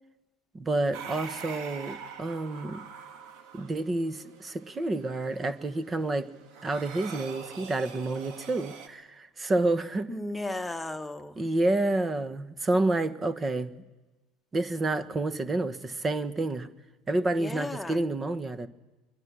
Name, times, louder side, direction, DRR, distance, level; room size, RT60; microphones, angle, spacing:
voice 1, 0.5-2.8 3.5-6.3 6.6-10.1 11.4-13.7 14.5-16.7 17.1-18.7, right 2 dB, 25° right, 1.4 m, -29 dB
sound 1, 0.9-8.9, right 6 dB, 60° right, 2.1 m, -44 dB
voice 2, 10.1-11.4 17.3-18.0, left 2 dB, 5° left, 1.5 m, -35 dB
22.5 x 22.0 x 6.2 m
hypercardioid pair, 75°, 0 cm